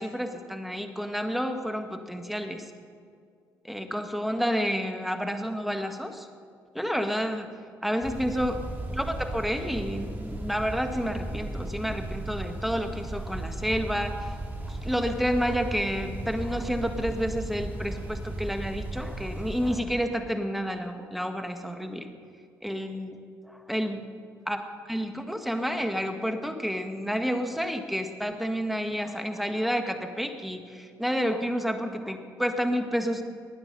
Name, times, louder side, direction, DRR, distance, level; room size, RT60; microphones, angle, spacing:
voice 1, 0.0-2.6 3.6-6.3 6.7-7.5 7.8-8.6 8.9-14.4 14.7-22.1 22.6-23.2 23.7-24.0 24.5-33.2, equal, ahead, 6 dB, 1.7 m, -30 dB
sound 1, 8.0-19.8, right 2 dB, 20° right, 3.3 m, -36 dB
20.0 x 9.7 x 5.5 m, 2.2 s
hypercardioid pair, 55°, 8 cm